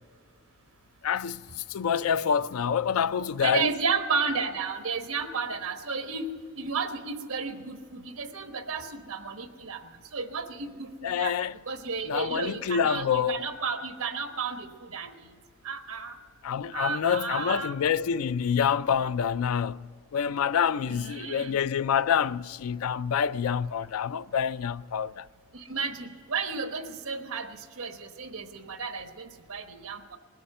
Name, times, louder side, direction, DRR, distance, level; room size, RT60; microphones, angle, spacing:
voice 1, 1.0-3.7 11.0-11.6 12.0-13.4 16.4-25.3, left 7 dB, 80° left, 0.4 m, -27 dB
voice 2, 3.4-6.3 6.6-9.8 10.1-11.3 11.7-15.1 15.6-16.2 16.7-17.7 20.9-21.6 25.5-30.2, right 5 dB, 80° right, 1.2 m, -33 dB
20.0 x 8.4 x 7.7 m
head